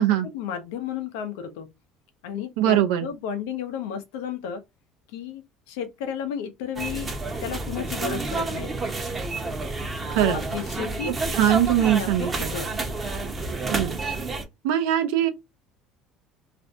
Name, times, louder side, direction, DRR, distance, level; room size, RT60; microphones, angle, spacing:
voice 1, 0.3-1.7 2.2-4.6 5.1-7.1 7.4-8.7 10.2-11.1 11.9-12.7, left 7 dB, 90° left, 0.6 m, -33 dB
voice 2, 2.6-3.1 10.1-10.4 11.3-12.5 13.7-14.0 14.6-15.3, right 11 dB, 85° right, 0.5 m, -21 dB
sound 1, 6.8-14.4, right 3 dB, 25° right, 0.7 m, -30 dB
2.5 x 2.1 x 2.6 m
supercardioid pair, 100°, 0 cm